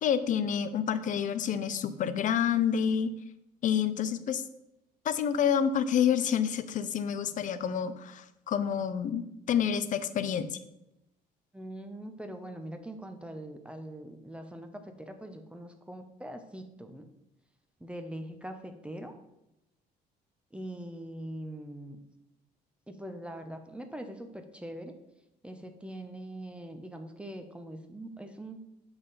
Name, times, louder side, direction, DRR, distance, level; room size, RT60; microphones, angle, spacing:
voice 1, 0.0-3.1 3.6-4.4 5.0-10.6, left 8 dB, 50° left, 13 dB, 0.6 m, -28 dB
voice 2, 11.5-17.1 17.8-19.1 20.5-22.0 22.9-24.9 25.4-28.6, right 1 dB, 5° right, 6 dB, 0.7 m, -42 dB
7.1 x 5.6 x 4.1 m, 0.86 s
cardioid pair, 110°, 17 cm